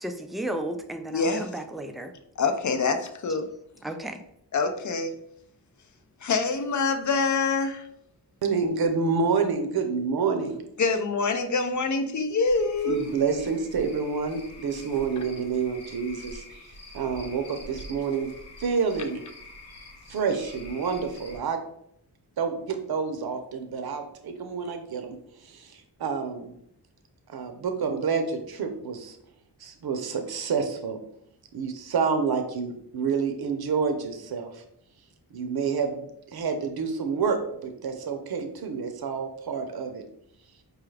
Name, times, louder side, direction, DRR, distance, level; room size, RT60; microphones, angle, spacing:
voice 1, 0.0-2.1 3.8-4.2, right 1 dB, ahead, 6 dB, 0.3 m, -34 dB
voice 2, 1.1-1.5 2.4-3.5 4.5-5.1 6.2-7.9 10.8-13.0, left 4 dB, 45° left, 8 dB, 0.6 m, -25 dB
voice 3, 8.4-10.6 12.8-18.3 18.6-19.2 20.1-21.6 22.4-26.5 27.3-29.2 29.6-31.0 31.5-34.6 35.3-40.0, right 5 dB, 60° right, 5 dB, 0.7 m, -28 dB
Cricket / Frog, 12.5-21.4, left 1 dB, 75° left, 0.8 m, -46 dB
4.7 x 2.3 x 3.3 m, 0.73 s
cardioid pair, 70°, 41 cm